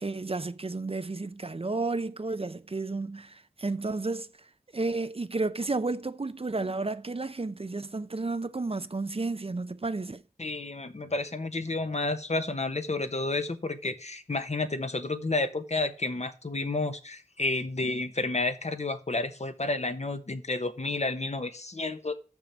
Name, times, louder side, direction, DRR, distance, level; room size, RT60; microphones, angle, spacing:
voice 1, 0.0-4.3 4.7-10.2, right 3 dB, 40° right, 0.6 m, -32 dB
voice 2, 10.4-22.1, left 2 dB, 50° left, 1.1 m, -31 dB
6.7 x 6.1 x 7.3 m
wide cardioid pair, 50°, 15 cm